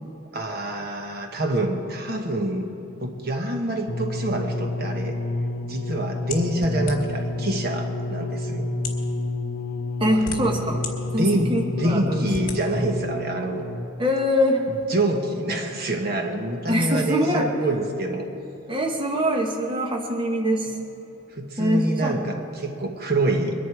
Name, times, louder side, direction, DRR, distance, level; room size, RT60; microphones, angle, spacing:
voice 1, 0.3-2.7 3.0-5.2 5.6-8.7 10.1-10.7 11.1-13.6 14.7-18.3 21.3-23.5, right 1 dB, 45° right, 4 dB, 1.1 m, -26 dB
sound 1, 3.9-14.0 14.8-14.9, left 2 dB, 80° left, 0.7 m, -29 dB
sound 2, 6.3-7.3 8.1-8.2 8.7-9.1 9.8-10.9 11.4-11.5 12.3-12.6, left 4 dB, 40° left, 1.6 m, -34 dB
voice 2, 10.0-10.8 11.1-12.3 14.0-14.6 16.7-17.5 18.7-20.7 21.6-22.2, equal, 25° right, 1 dB, 1.1 m, -23 dB
22.5 x 11.0 x 4.8 m, 3.0 s
head